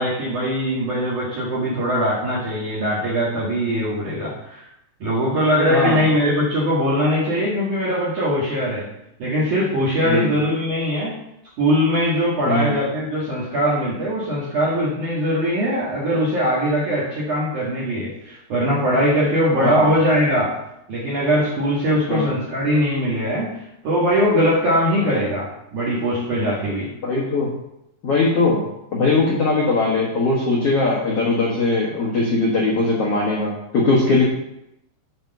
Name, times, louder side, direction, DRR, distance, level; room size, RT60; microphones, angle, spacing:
voice 1, 0.0-4.6 5.0-8.9 9.2-11.1 11.6-20.6 20.9-23.5 23.8-26.9, equal, 50° right, -4 dB, 2.9 m, -21 dB
voice 2, 5.7-6.0 10.0-10.3 12.5-12.7 19.5-19.9 22.1-22.3 25.0-25.2 27.0-27.5 28.0-28.6 28.9-34.2, left 3 dB, 85° left, -4 dB, 1.3 m, -20 dB
9.1 x 5.3 x 6.7 m, 0.83 s
omnidirectional pair, 5.3 m